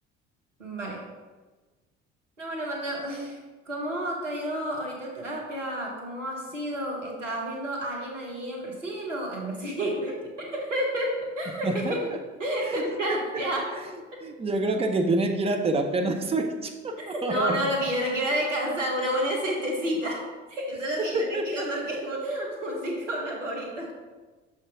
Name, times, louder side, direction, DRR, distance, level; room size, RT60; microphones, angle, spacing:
voice 1, 0.6-1.1 2.4-3.4 3.7-12.1 12.4-13.7 17.0-20.2 20.5-23.9, equal, 85° right, -1 dB, 1.0 m, -30 dB
voice 2, 11.6-12.0 12.6-12.8 13.7-13.9 14.2-17.7 21.1-21.6, right 2 dB, 15° right, 4 dB, 0.7 m, -27 dB
6.5 x 3.5 x 5.0 m, 1.3 s
figure-of-eight pair, 55°, 36 cm